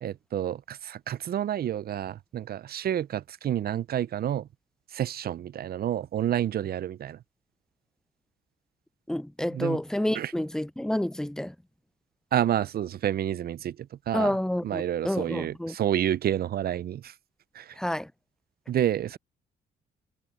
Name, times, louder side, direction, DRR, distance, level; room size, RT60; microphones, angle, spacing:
voice 1, 0.0-4.5 4.9-7.2 9.5-9.8 10.1-10.3 12.3-14.3 14.6-17.1 17.5-17.8 18.7-19.2, right 11 dB, 50° right, 0.5 m, -29 dB
voice 2, 9.1-11.5 14.1-15.7 17.8-18.1, left 1 dB, 5° left, 0.5 m, -29 dB
cardioid pair, 90°, 20 cm